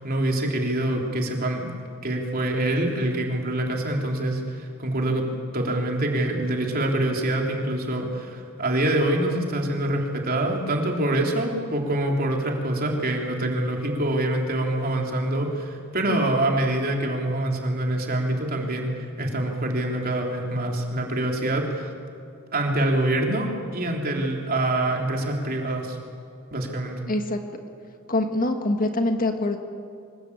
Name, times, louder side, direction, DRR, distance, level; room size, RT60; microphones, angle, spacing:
voice 1, 0.0-1.7 2.0-5.3 5.5-21.9 22.5-26.0 26.5-27.0, right 1 dB, 40° right, 1 dB, 3.5 m, -25 dB
voice 2, 27.1-27.6 28.1-29.6, left 2 dB, 40° left, 5 dB, 1.8 m, -25 dB
25.0 x 21.5 x 8.7 m, 2.4 s
head